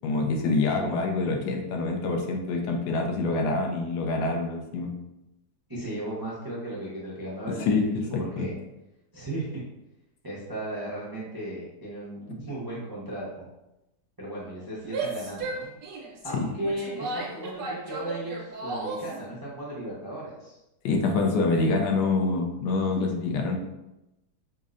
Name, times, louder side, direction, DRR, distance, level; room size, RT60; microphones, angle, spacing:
voice 1, 0.0-4.9 7.6-7.8 8.1-8.5 20.8-23.6, left 3 dB, 80° left, 2 dB, 1.2 m, -26 dB
voice 2, 5.7-8.6 9.1-9.6 10.2-13.5 14.2-15.8 16.2-20.6, right 1 dB, 35° right, -7 dB, 0.3 m, -36 dB
Female speech woman speaking / Yell, 14.8-19.2, right 3 dB, 80° right, 1.3 m, -35 dB
5.2 x 2.1 x 2.5 m, 0.92 s
omnidirectional pair, 1.8 m